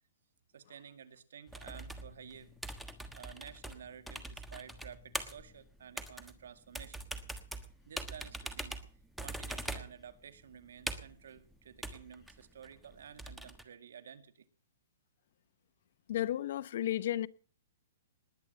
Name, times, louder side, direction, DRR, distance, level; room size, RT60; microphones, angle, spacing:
voice 1, 0.5-2.5 3.1-7.0 7.9-8.8 9.2-14.5, right 8 dB, 80° right, 1.9 m, -52 dB
sound 1, 1.5-13.6, right 1 dB, ahead, 1.3 m, -43 dB
voice 2, 16.1-17.3, left 12 dB, 60° left, 0.8 m, -33 dB
20.0 x 8.9 x 6.7 m
hypercardioid pair, 150°, 0 cm